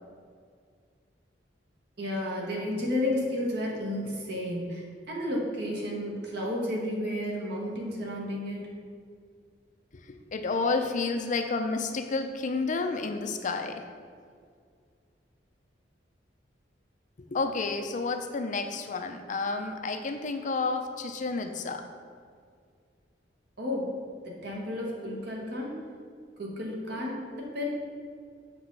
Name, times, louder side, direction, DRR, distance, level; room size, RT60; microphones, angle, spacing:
voice 1, 2.0-8.7 23.6-24.0 24.2-25.8 26.4-27.6, left 1 dB, 65° right, -3 dB, 1.7 m, -32 dB
voice 2, 10.1-13.8 17.3-21.9, left 3 dB, 45° left, 7 dB, 0.5 m, -30 dB
7.8 x 5.3 x 4.0 m, 2.1 s
head